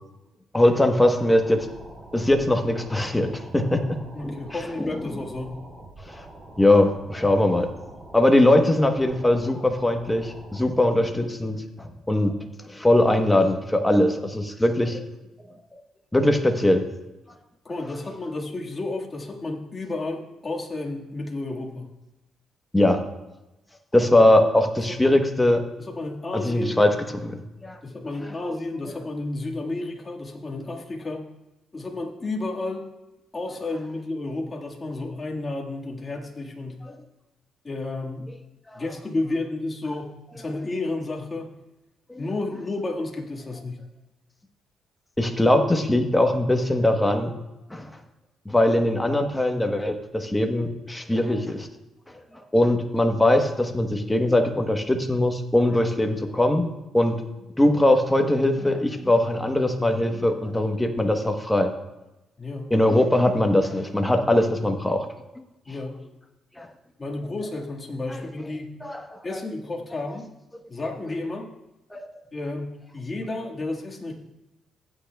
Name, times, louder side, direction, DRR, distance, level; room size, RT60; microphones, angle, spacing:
voice 1, 0.5-1.7 2.1-4.0 4.2-4.3 4.8-4.9 6.2-6.3 6.6-7.7 8.1-12.3 12.7-15.0 16.1-16.8 22.7-23.0 23.9-25.6 26.3-26.9 27.2-27.8 38.7-38.8 42.1-42.2 45.2-47.3 47.7-47.9 48.4-51.7 52.5-56.7 56.9-57.2 57.6-61.7 62.7-65.1 66.6-66.7 68.1-68.2 68.8-69.2 71.9-72.1, left 1 dB, 10° left, 4 dB, 1.1 m, -21 dB
sound 1, 0.7-10.7, right 2 dB, 50° right, 3.5 m, -45 dB
voice 2, 4.1-5.6 17.7-21.9 24.9-25.2 25.8-26.9 27.8-31.2 31.7-32.9 33.3-36.8 37.6-38.3 38.7-40.1 40.3-41.5 42.2-43.8 62.4-62.7 65.7-66.0 67.0-68.7 69.2-70.2 70.7-71.5 72.3-74.1, left 2 dB, 30° left, -1 dB, 1.8 m, -31 dB
15.5 x 8.8 x 2.3 m, 0.95 s
cardioid pair, 90°, 0 cm